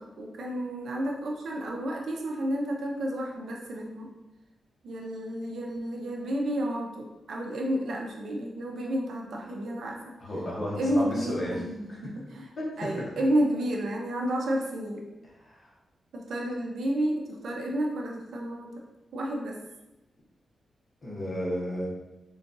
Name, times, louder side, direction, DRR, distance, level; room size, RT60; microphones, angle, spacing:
voice 1, 0.0-4.1 4.8-10.1 10.8-12.5 12.8-15.0 16.1-18.7 19.1-19.6, right 1 dB, 80° right, 0 dB, 0.5 m, -31 dB
voice 2, 10.2-11.6 11.9-12.1 12.6-13.1 15.4-15.7 21.0-21.9, equal, 40° left, -5 dB, 1.0 m, -33 dB
3.8 x 2.3 x 2.6 m, 0.99 s
wide cardioid pair, 120°, 0 cm